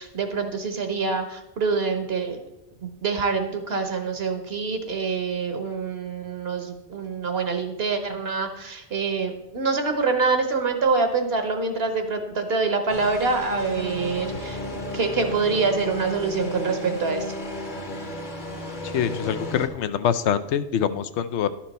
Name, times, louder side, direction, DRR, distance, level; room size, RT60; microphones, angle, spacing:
voice 1, 0.0-2.4 2.8-17.3, right 4 dB, 65° right, 7 dB, 1.2 m, -26 dB
sound 1, 12.9-19.7, left 1 dB, 45° left, 1.2 m, -33 dB
voice 2, 18.8-21.5, left 9 dB, 80° left, 12 dB, 0.9 m, -25 dB
11.5 x 6.0 x 4.1 m, 0.91 s
omnidirectional pair, 1.2 m